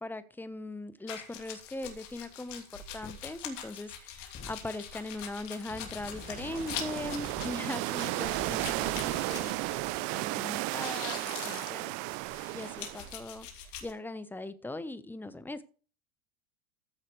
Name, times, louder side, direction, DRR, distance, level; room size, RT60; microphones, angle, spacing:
voice 1, 0.0-11.9 12.5-15.6, left 2 dB, 5° left, 1.0 m, -40 dB
sound 1, 1.1-10.3 10.6-13.9, left 9 dB, 65° left, 2.9 m, -44 dB
sound 2, 3.0-3.1 4.3-4.5 5.7-7.5 8.2-10.0, left 4 dB, 20° left, 1.4 m, -47 dB
sound 3, 6.1-13.1, right 22 dB, 40° right, 0.5 m, -34 dB
14.5 x 8.3 x 3.2 m
hypercardioid pair, 90°, 40 cm